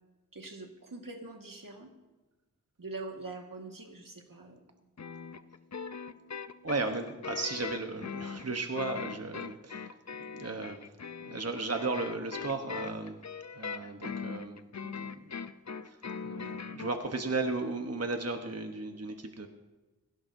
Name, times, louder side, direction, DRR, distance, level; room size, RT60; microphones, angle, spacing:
voice 1, 0.3-1.9 2.8-4.6, right 3 dB, 85° right, 2 dB, 1.8 m, -43 dB
sound 1, 5.0-16.9, left 6 dB, 55° left, 0.6 m, -40 dB
voice 2, 6.6-10.8 11.2-13.2 13.5-15.3 15.8-16.0 16.2-19.5, right 3 dB, 50° right, 5 dB, 1.0 m, -35 dB
17.5 x 15.5 x 2.7 m, 1.2 s
wide cardioid pair, 45°, 33 cm